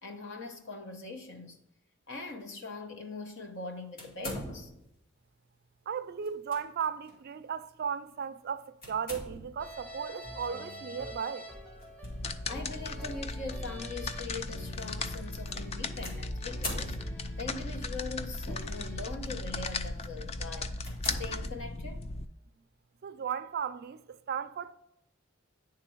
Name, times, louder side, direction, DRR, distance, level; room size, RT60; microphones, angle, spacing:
voice 1, 0.0-1.6 2.1-4.7 12.4-17.0 17.4-20.7 21.0-22.0, left 3 dB, 60° left, 1.0 m, -42 dB
sound 1, 4.0-5.0 6.2-6.6 7.1-7.2 8.8-9.7 11.8-12.1 12.9-13.0 16.0-17.4 18.3-18.8 19.4-19.6 20.1-20.2 20.8-22.0, left 1 dB, 45° left, 2.1 m, -42 dB
voice 2, 5.9-11.5 23.0-24.7, right 7 dB, 50° right, 0.4 m, -36 dB
sound 2, 9.6-19.0, right 1 dB, 5° left, 0.8 m, -47 dB
sound 3, 12.0-22.3, left 3 dB, 30° left, 0.4 m, -37 dB
9.7 x 3.7 x 4.5 m
head